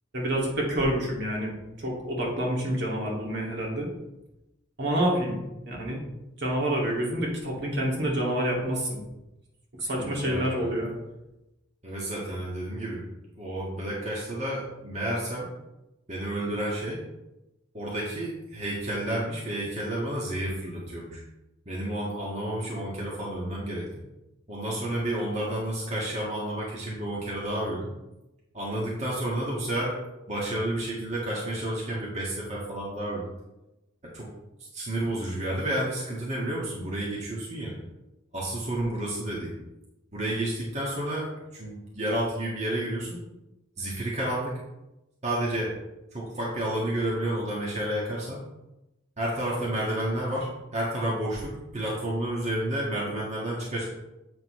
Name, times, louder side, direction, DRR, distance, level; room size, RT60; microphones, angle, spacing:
voice 1, 0.1-1.5 1.8-3.9 4.8-5.4 5.7-6.0 6.4-9.0 9.8-11.0, right 1 dB, 60° right, -3 dB, 2.3 m, -28 dB
voice 2, 10.0-10.7 11.8-13.0 13.4-15.5 16.1-17.0 17.7-21.2 21.7-23.9 24.5-27.9 28.5-30.0 30.3-33.3 34.0-34.3 34.7-37.7 38.3-39.5 40.1-43.2 43.8-44.5 45.2-45.7 46.1-48.4 49.2-53.8, right 1 dB, 35° right, -5 dB, 1.6 m, -30 dB
8.1 x 6.8 x 3.2 m, 0.96 s
head